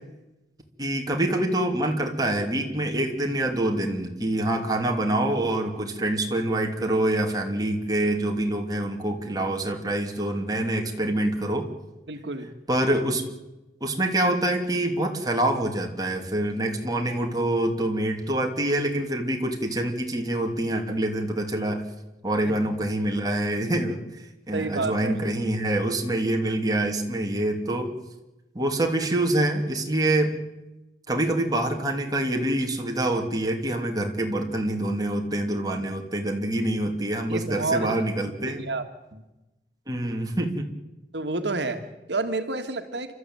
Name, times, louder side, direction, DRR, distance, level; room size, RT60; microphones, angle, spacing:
voice 1, 0.8-11.7 12.7-13.2 13.8-21.8 22.2-24.0 24.5-27.9 28.5-30.3 31.1-38.7 39.9-40.7, right 1 dB, 20° right, 2 dB, 3.0 m, -26 dB
voice 2, 12.1-12.5 22.4-22.5 24.5-25.1 37.3-37.9 38.4-38.8 39.1-39.2 41.1-43.1, right 3 dB, 85° right, 7 dB, 1.9 m, -29 dB
29.0 x 13.5 x 9.2 m, 1.0 s
head